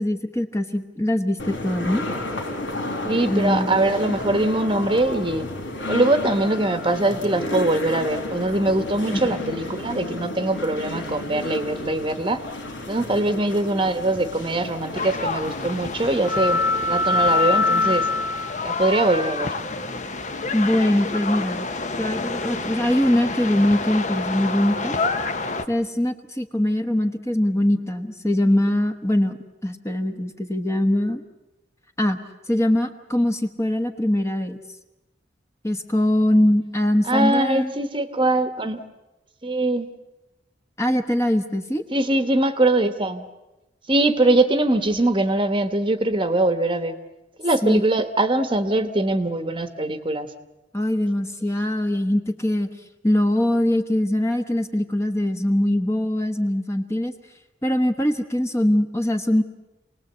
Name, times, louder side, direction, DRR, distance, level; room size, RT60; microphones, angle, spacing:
voice 1, 0.0-2.1 3.3-3.8 9.2-9.3 20.5-21.7 22.0-25.0 25.7-31.2 32.0-32.2 32.5-34.6 35.6-37.7 40.8-41.8 47.6-47.8 50.7-52.7 53.0-57.1 57.6-59.4, left 1 dB, 15° left, 5 dB, 1.2 m, -22 dB
sound 1, 1.4-18.5, left 2 dB, 90° left, 3.8 m, -28 dB
voice 2, 3.0-5.5 5.9-12.4 12.9-18.1 18.6-19.5 37.1-38.8 39.4-39.9 41.9-43.2 43.9-47.0 47.4-50.3, right 2 dB, 25° right, 9 dB, 1.2 m, -22 dB
sound 2, 14.9-25.7, left 3 dB, 40° left, 1.0 m, -29 dB
28.0 x 19.5 x 8.0 m, 1.0 s
head